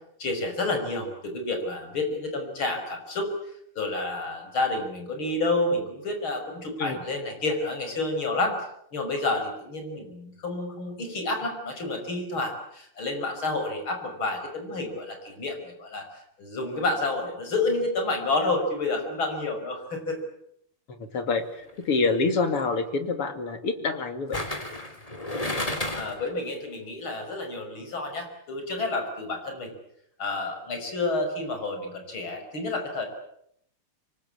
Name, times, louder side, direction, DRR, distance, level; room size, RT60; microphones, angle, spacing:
voice 1, 0.2-3.3 3.8-8.6 8.9-16.1 16.4-20.2 25.3-25.5 26.0-29.7 30.2-33.1, left 2 dB, 65° left, 5 dB, 6.4 m, -29 dB
voice 2, 20.9-24.4, left 4 dB, 85° left, 8 dB, 3.5 m, -27 dB
sound 1, 21.7-22.0 24.3-26.3 26.6-26.7, left 1 dB, 15° left, 3.3 m, -31 dB
26.5 x 23.5 x 8.6 m, 0.73 s
omnidirectional pair, 2.4 m